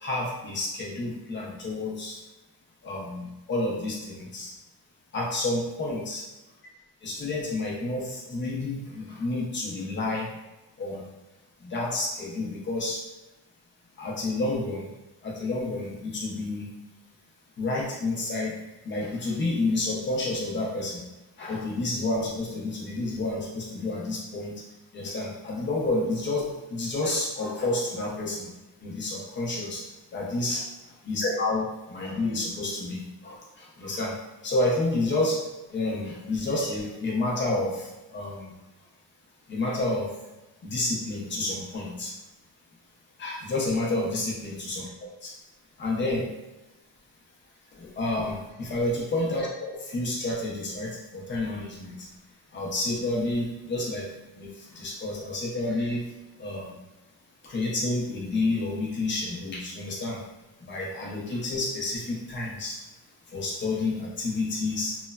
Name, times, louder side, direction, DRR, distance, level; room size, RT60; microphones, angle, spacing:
voice 1, 0.0-2.2 2.8-4.5 5.1-6.2 7.0-10.3 10.8-11.1 11.6-13.0 14.0-14.9 15.2-16.7 17.6-21.0 21.4-24.6 24.9-28.5 28.8-30.7 31.1-34.2 34.4-38.6 39.5-40.1 40.6-42.1 43.2-44.8 45.2-45.3 45.8-46.3 47.7-52.1 52.5-56.8 57.4-60.2 60.6-62.8 63.3-65.0, left 2 dB, 25° left, -3 dB, 0.5 m, -30 dB
3.0 x 2.1 x 2.2 m, 1.0 s
cardioid pair, 160°, 44 cm